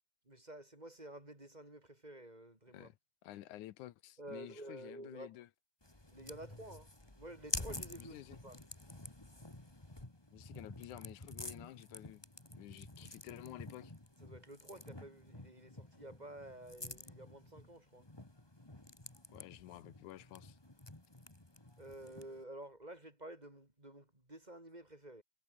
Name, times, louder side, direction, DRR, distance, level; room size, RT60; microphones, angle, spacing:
voice 1, 0.3-2.9 4.2-5.4 6.1-6.9 7.2-8.6 14.2-18.1 21.8-25.2, right 1 dB, 10° right, 5.2 m, -51 dB
voice 2, 3.2-5.5 8.0-8.4 10.3-12.2 12.5-13.9 19.3-20.6, left 14 dB, 80° left, 2.3 m, -51 dB
sound 1, 5.8-22.4, left 1 dB, 10° left, 2.0 m, -49 dB
omnidirectional pair, 3.6 m